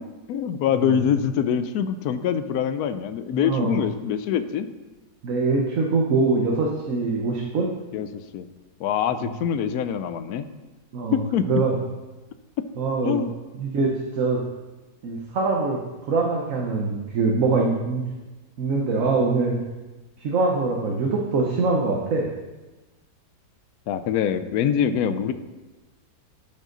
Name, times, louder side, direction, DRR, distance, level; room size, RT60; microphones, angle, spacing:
voice 1, 0.3-4.7 7.9-8.4 8.8-10.5 11.1-11.6 13.0-13.3 23.9-25.3, left 8 dB, 70° left, 11 dB, 0.9 m, -24 dB
voice 2, 3.3-3.8 5.2-7.7 9.1-9.3 10.9-11.7 12.8-13.2 13.5-14.4 15.0-15.8 16.1-18.0 18.6-19.5 20.2-22.3, right 3 dB, 55° right, -1 dB, 1.1 m, -23 dB
12.0 x 5.5 x 3.9 m, 1.2 s
omnidirectional pair, 1.9 m